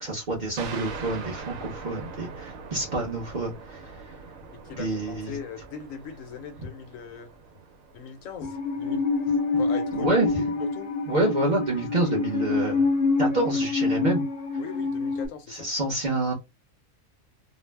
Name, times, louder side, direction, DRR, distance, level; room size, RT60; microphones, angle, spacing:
voice 1, 0.0-3.8 4.7-5.4 9.9-10.3 11.1-12.8 13.2-14.2 15.5-16.3, right 2 dB, 40° right, 0.7 m, -27 dB
sound 1, 0.6-9.8, right 5 dB, 80° right, 1.0 m, -42 dB
voice 2, 4.5-7.3 7.9-9.1 9.6-10.3 10.7-10.9 14.6-15.7, left 6 dB, 80° left, 1.0 m, -39 dB
Musical instrument, 8.4-15.3, left 4 dB, 60° left, 0.7 m, -26 dB
2.5 x 2.0 x 3.2 m
omnidirectional pair, 1.4 m